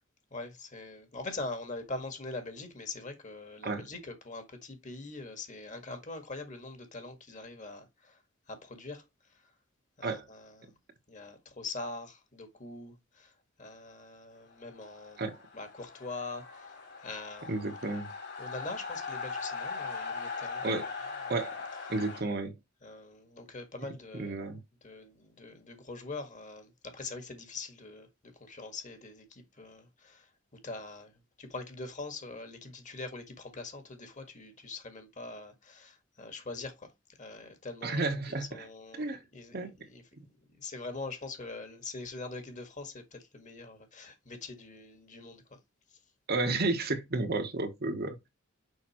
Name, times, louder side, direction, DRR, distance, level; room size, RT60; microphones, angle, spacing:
voice 1, 0.3-8.2 8.5-9.0 10.0-10.7 11.1-13.3 13.6-15.3 15.5-17.6 17.9-18.0 18.4-20.6 21.3-21.4 22.8-24.4 24.8-31.1 31.4-36.9 37.2-39.0 39.3-40.0 40.5-45.6, left 3 dB, 40° left, 1.7 m, -43 dB
sound 1, 14.5-22.2, left 4 dB, 60° left, 3.0 m, -40 dB
voice 2, 17.5-18.1 20.6-20.9 21.3-21.6 21.9-22.5 24.1-24.6 37.8-38.6 38.9-39.2 39.5-39.7 46.3-48.3, right 3 dB, 50° right, 1.1 m, -32 dB
6.5 x 5.3 x 3.0 m
head